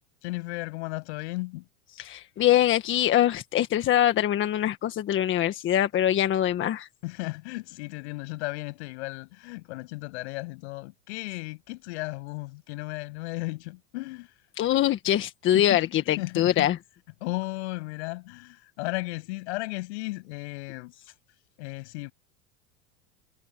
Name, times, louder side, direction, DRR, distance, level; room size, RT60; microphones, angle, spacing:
voice 1, 0.2-1.7 7.0-14.3 15.5-16.7 17.2-20.9 21.6-22.1, left 23 dB, 70° left, 7.8 m, -35 dB
voice 2, 2.0-6.9 14.6-16.8, left 12 dB, 35° left, 1.5 m, -23 dB
supercardioid pair, 125°, 35 cm